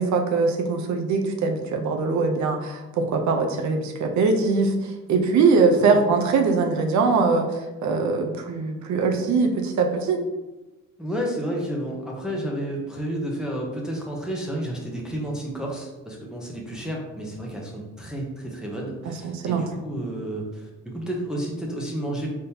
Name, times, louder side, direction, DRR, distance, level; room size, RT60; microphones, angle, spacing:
voice 1, 0.0-4.7 5.1-7.5 7.8-10.2 19.2-19.6, right 4 dB, 70° right, 4 dB, 0.7 m, -22 dB
voice 2, 11.0-22.3, right 1 dB, ahead, -2 dB, 0.8 m, -31 dB
4.0 x 3.6 x 2.8 m, 1.1 s
cardioid pair, 90°, 30 cm